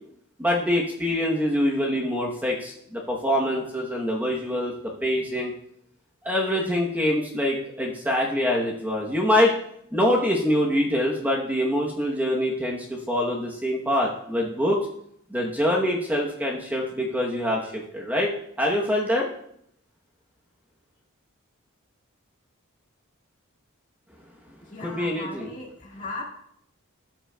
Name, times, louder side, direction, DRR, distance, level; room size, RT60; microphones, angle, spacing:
voice 1, 0.4-4.7 5.0-5.5 6.2-9.5 9.9-14.8 15.3-18.3 18.6-19.3 24.8-25.5, left 1 dB, 10° right, -2 dB, 0.9 m, -24 dB
voice 2, 24.6-26.2, left 2 dB, 35° left, -2 dB, 1.9 m, -37 dB
14.0 x 7.4 x 2.3 m, 0.70 s
head